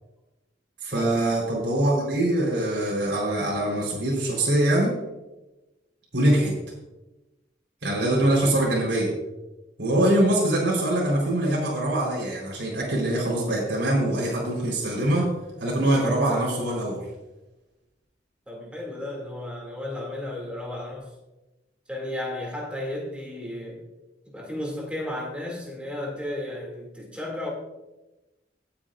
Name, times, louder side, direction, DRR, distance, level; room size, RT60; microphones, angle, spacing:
voice 1, 0.8-5.0 6.1-6.5 7.8-9.1 9.8-15.3 15.6-17.0, right 1 dB, 80° right, -4 dB, 4.0 m, -23 dB
voice 2, 18.5-21.1 21.9-23.8 24.3-27.5, left 1 dB, 5° right, -2 dB, 2.5 m, -34 dB
18.5 x 8.6 x 2.5 m, 1.0 s
head